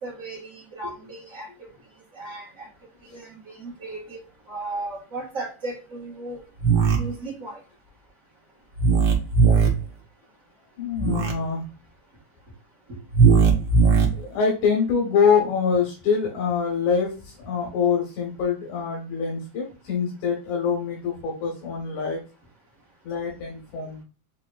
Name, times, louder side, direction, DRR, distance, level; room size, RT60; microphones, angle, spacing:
voice 1, 0.0-1.5 2.1-2.7 3.0-6.4 6.9-7.6 12.9-13.0, right 2 dB, 40° right, -7 dB, 1.3 m, -36 dB
sound 1, 6.6-7.0 8.8-9.7 10.9-11.3 13.1-14.1, right 5 dB, 65° right, 1.2 m, -17 dB
voice 2, 10.8-11.6 14.1-22.2 23.0-24.0, left 6 dB, 85° left, -1 dB, 2.5 m, -25 dB
6.7 x 2.9 x 2.3 m, 0.33 s
omnidirectional pair, 3.3 m